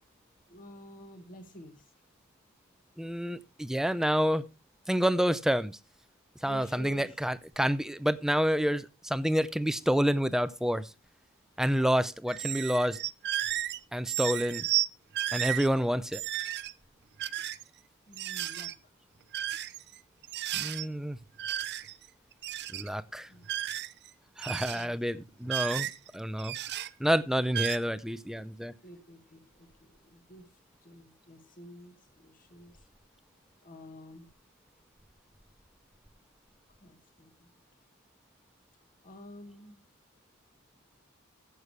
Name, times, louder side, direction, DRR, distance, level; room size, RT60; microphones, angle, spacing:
voice 1, 0.5-1.9 6.4-7.1 18.1-18.7 23.3-23.5 24.5-24.9 28.8-30.5 30.8-32.9 33.6-34.3 36.8-37.5 39.0-39.8, left 1 dB, 40° left, 1.8 m, -51 dB
voice 2, 3.0-4.5 4.9-5.8 6.4-10.9 11.6-13.0 13.9-14.6 15.3-16.2 20.5-21.2 22.7-23.3 24.4-25.9 26.1-26.5 27.0-28.7, equal, ahead, 0.5 m, -28 dB
sound 1, 12.3-13.8 14.1-14.9 15.1-15.7 16.1-16.7 17.2-17.6 18.1-18.7 19.3-20.0 20.2-20.9 21.4-22.1 22.3-22.9 23.4-24.1 24.4-24.9 25.5-26.1 26.4-26.9 27.5-27.8, right 13 dB, 50° right, 0.5 m, -33 dB
14.0 x 8.2 x 3.3 m
head